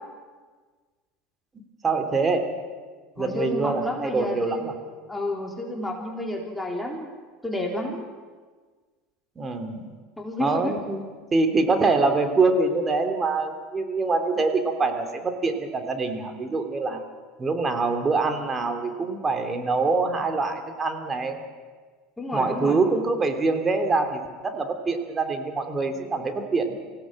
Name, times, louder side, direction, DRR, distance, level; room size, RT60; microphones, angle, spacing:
voice 1, 1.8-2.5 3.2-4.7 9.3-9.9 10.4-11.0 11.3-17.0 17.4-21.4 22.3-26.8, right 3 dB, 25° right, 6 dB, 3.2 m, -25 dB
voice 2, 3.2-4.6 5.1-7.1 7.4-8.0 10.2-10.7 22.2-22.8, left 1 dB, 10° left, 0 dB, 4.0 m, -30 dB
24.5 x 17.0 x 7.5 m, 1.5 s
hypercardioid pair, 80°, 0 cm